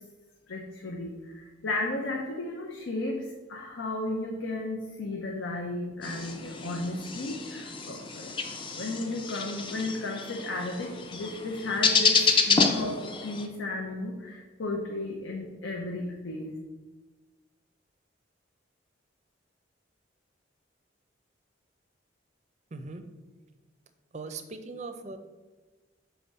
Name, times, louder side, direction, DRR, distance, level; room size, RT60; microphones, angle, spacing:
voice 1, 0.5-8.3 8.7-16.5, left 2 dB, 85° left, 0 dB, 0.7 m, -34 dB
sound 1, 6.0-13.5, left 4 dB, 25° left, 0.4 m, -29 dB
voice 2, 22.7-23.0 24.1-25.2, right 3 dB, 35° right, 8 dB, 0.5 m, -39 dB
6.0 x 3.5 x 5.4 m, 1.2 s
head